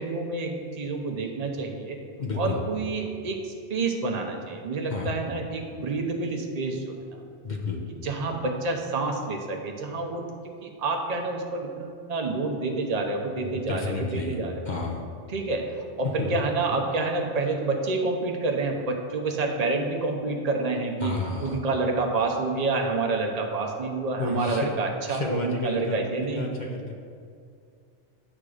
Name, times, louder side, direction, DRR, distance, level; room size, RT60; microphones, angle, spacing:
voice 1, 0.0-2.0 2.3-7.2 7.9-14.7 15.3-26.5, right 3 dB, 40° right, 2 dB, 0.8 m, -28 dB
voice 2, 2.2-2.6 4.9-5.1 7.4-7.8 13.4-14.4 14.7-15.0 16.2-16.3 21.0-21.6 24.2-24.7 25.1-26.0 26.3-26.9, left 3 dB, 45° left, 0 dB, 0.7 m, -31 dB
8.8 x 3.6 x 6.5 m, 2.3 s
omnidirectional pair, 1.2 m